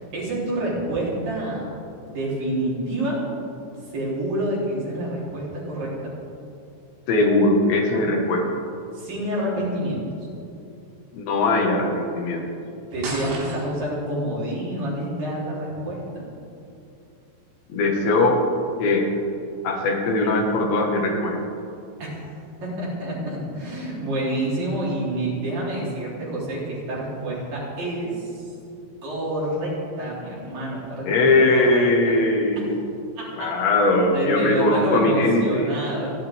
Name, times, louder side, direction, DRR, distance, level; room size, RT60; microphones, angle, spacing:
voice 1, 0.0-1.7 2.0-3.2 3.9-5.9 8.9-10.0 12.9-16.2 22.0-22.2 22.6-28.4 29.0-29.7 30.0-31.3 31.6-31.9 33.2-33.5 34.1-36.1, right 1 dB, 50° right, -7 dB, 5.4 m, -28 dB
voice 2, 7.1-8.6 11.1-12.5 17.7-18.4 18.8-19.1 19.6-21.4 31.0-32.7 33.4-35.8, left 2 dB, 80° left, 0 dB, 4.1 m, -20 dB
sound 1, 13.0-14.0, right 2 dB, 75° right, 4.7 m, -33 dB
29.0 x 11.5 x 3.7 m, 2.6 s
omnidirectional pair, 5.1 m